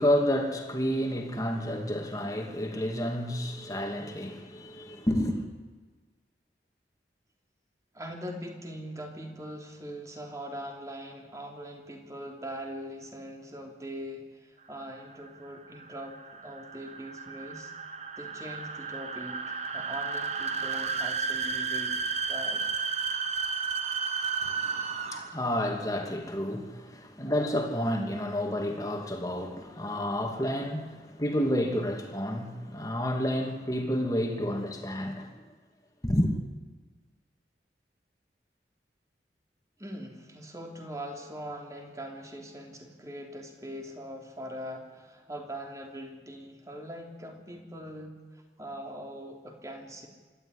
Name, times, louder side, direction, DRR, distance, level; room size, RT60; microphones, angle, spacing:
voice 1, 0.0-5.4 24.4-35.3 36.0-36.3, equal, 20° left, 2.5 m, -30 dB
voice 2, 7.9-17.7 18.2-22.0 22.3-22.7 39.8-50.1, equal, 20° right, 3.2 m, -41 dB
sound 1, 14.8-25.5, right 5 dB, 40° right, 1.1 m, -33 dB
26.5 x 13.0 x 9.9 m
head